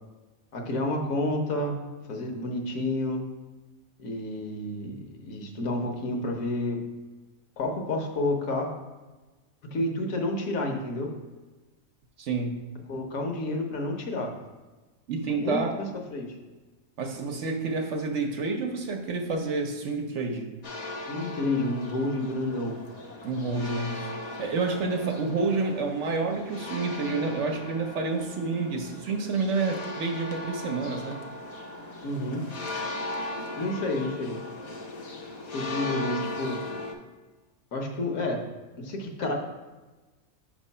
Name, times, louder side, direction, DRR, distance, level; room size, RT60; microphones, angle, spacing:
voice 1, 0.5-1.7 2.1-3.2 4.0-6.8 7.6-8.7 9.7-11.1 12.9-14.3 15.3-16.4 21.1-22.8 32.0-32.4 33.6-34.4 35.5-36.6 37.7-38.5 38.8-39.3, left 1 dB, 70° left, 2 dB, 1.3 m, -30 dB
voice 2, 12.2-12.6 15.1-15.7 17.0-20.5 23.2-24.1 24.4-31.2, right 3 dB, 65° right, 4 dB, 0.9 m, -29 dB
sound 1, 20.6-36.9, left 2 dB, 45° left, 0.5 m, -38 dB
6.5 x 3.1 x 5.4 m, 1.2 s
omnidirectional pair, 1.5 m